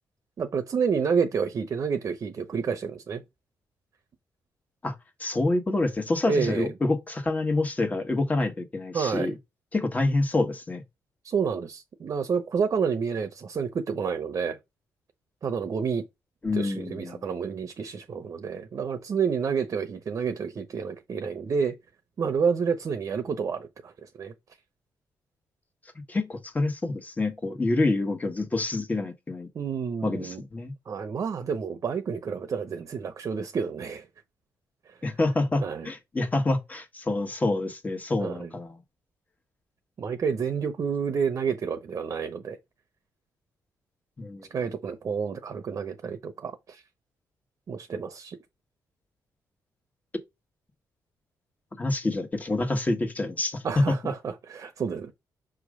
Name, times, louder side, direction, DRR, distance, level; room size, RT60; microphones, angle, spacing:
voice 1, 0.4-3.2 6.2-6.7 8.9-9.4 11.2-14.6 15.4-16.1 16.5-21.8 22.2-24.3 29.5-30.4 30.9-34.1 35.6-35.9 38.2-38.5 40.0-42.6 44.5-46.8 47.7-48.4 53.6-55.1, right 6 dB, 50° right, 0.8 m, -29 dB
voice 2, 5.2-9.3 9.7-10.8 16.4-17.2 26.1-29.5 30.0-30.7 35.0-38.8 44.2-44.5 51.7-53.9, left 2 dB, 20° left, 1.4 m, -27 dB
6.3 x 3.1 x 4.9 m
cardioid pair, 100°, 7 cm